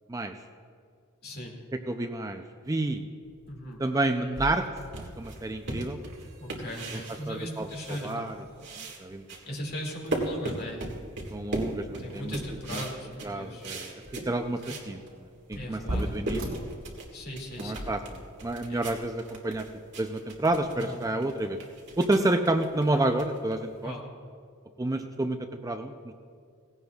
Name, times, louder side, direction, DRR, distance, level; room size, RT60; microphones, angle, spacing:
voice 1, 1.2-1.6 3.5-3.8 6.4-8.3 9.4-10.9 12.0-13.7 14.6-14.8 15.5-16.3 17.1-17.9 18.7-18.8 20.8-21.0 22.9-23.0 23.8-24.0, equal, 45° left, -1 dB, 2.3 m, -38 dB
voice 2, 1.9-3.0 3.8-4.7 5.2-6.0 7.3-7.7 8.0-8.3 9.0-9.2 11.3-12.4 12.7-12.8 13.2-13.9 14.3-14.6 14.9-15.0 15.5-16.4 17.6-18.0 18.4-19.7 20.0-21.6 22.0-23.9 24.8-25.4 25.6-26.1, right 2 dB, 15° right, 6 dB, 0.4 m, -29 dB
sound 1, 3.2-17.4, equal, 75° right, 3.2 m, -42 dB
sound 2, 4.9-8.3 8.6-14.9 15.3-15.4 15.8-23.9, right 2 dB, 55° right, 1.8 m, -38 dB
18.0 x 16.5 x 2.3 m, 2.2 s
head